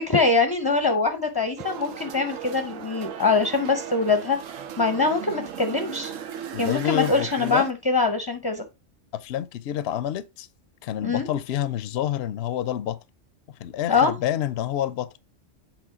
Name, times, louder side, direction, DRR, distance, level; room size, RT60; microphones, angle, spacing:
voice 1, 0.0-4.4 4.8-6.1 6.6-8.6 11.0-11.3 13.9-14.1, left 4 dB, 25° left, 0.6 m, -23 dB
sound 1, 1.6-7.7, right 8 dB, 90° right, 1.1 m, -37 dB
voice 2, 6.5-7.7 9.1-10.5 10.8-13.0 13.6-15.1, left 11 dB, 65° left, 0.7 m, -28 dB
8.0 x 3.5 x 4.9 m
omnidirectional pair, 1.3 m